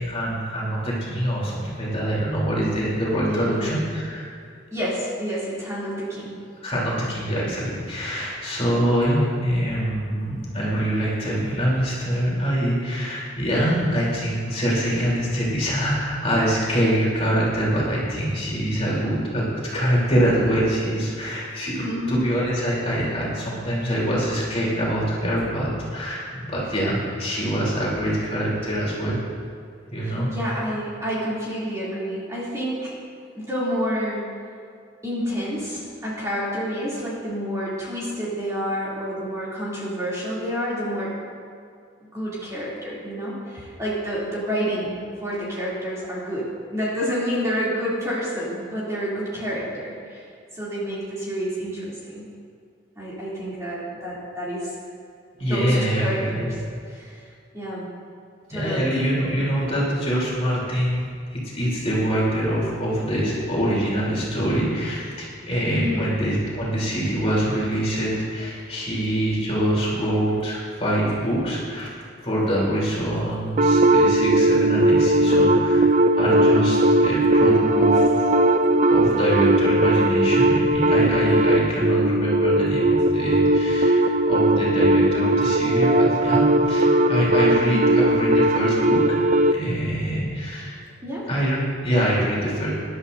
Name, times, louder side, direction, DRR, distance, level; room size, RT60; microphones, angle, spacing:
voice 1, 0.0-4.3 6.6-19.5 19.7-29.2 29.9-30.3 55.4-56.5 58.5-71.9 72.2-75.9 76.2-78.3 78.9-89.2 89.4-90.8 91.3-92.7, equal, 30° left, -6 dB, 3.4 m, -24 dB
voice 2, 3.2-3.8 4.7-6.3 21.8-22.2 30.0-33.0 33.3-34.3 35.0-41.1 42.1-50.3 50.5-52.2 53.0-54.8 55.4-56.6 56.9-57.3 57.5-57.9 58.5-58.9 65.7-66.2 87.5-88.0 91.0-91.3, equal, 15° right, -8 dB, 2.9 m, -29 dB
sound 1, 73.6-89.6, right 1 dB, 35° right, 0.4 m, -18 dB
21.0 x 11.5 x 2.7 m, 2.3 s
head